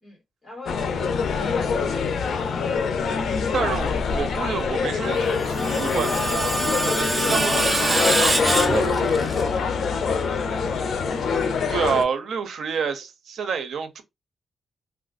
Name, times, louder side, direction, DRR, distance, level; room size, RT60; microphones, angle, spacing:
voice 1, 0.0-3.7 9.9-10.4 12.1-12.2, left 3 dB, 15° left, 2.0 m, -41 dB
sound 1, 0.7-12.0, left 5 dB, 75° left, 0.5 m, -24 dB
voice 2, 3.5-8.9 11.7-14.0, right 6 dB, 80° right, 0.5 m, -29 dB
Screech, 5.1-9.4, right 2 dB, 20° right, 0.5 m, -25 dB
3.3 x 2.4 x 2.4 m
wide cardioid pair, 125°, 0 cm